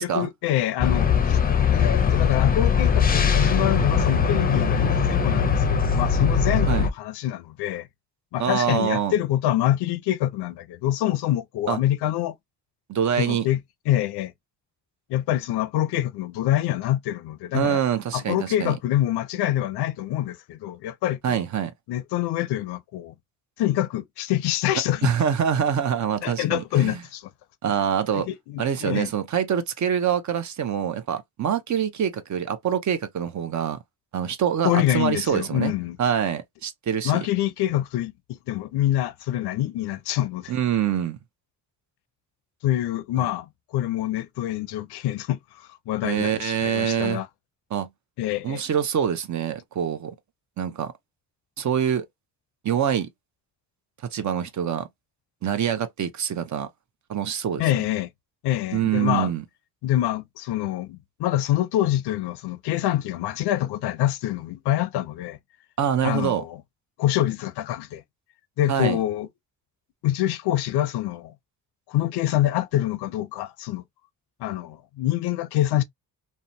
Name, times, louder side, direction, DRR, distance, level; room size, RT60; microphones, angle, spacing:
voice 1, 0.0-1.4 1.7-7.9 8.3-12.4 13.2-13.6 13.9-14.3 15.1-17.8 18.1-21.4 21.9-23.2 23.6-25.1 26.2-27.3 28.1-29.1 34.6-36.0 37.0-40.5 42.6-47.3 48.2-48.6 57.6-58.1 58.4-59.3 59.8-65.4 66.0-66.6 67.0-68.0 68.6-69.3 70.0-71.3 71.9-73.8 74.4-75.8, left 13 dB, 90° left, 0.5 m, -25 dB
sound 1, 0.8-6.9, left 6 dB, 25° left, 0.5 m, -21 dB
voice 2, 8.4-9.1 11.7-11.8 12.9-13.5 17.5-18.7 21.2-21.7 25.0-27.0 27.6-28.3 28.6-33.8 34.1-35.7 36.0-37.3 40.5-41.2 43.2-43.3 46.0-47.2 47.7-47.9 48.4-50.1 50.6-50.9 51.6-52.1 52.6-53.1 54.1-54.9 55.4-56.7 57.1-57.6 58.7-59.4 65.8-66.4 68.7-69.0, right 8 dB, 50° right, 0.6 m, -25 dB
2.8 x 2.1 x 2.5 m
cardioid pair, 90°, 38 cm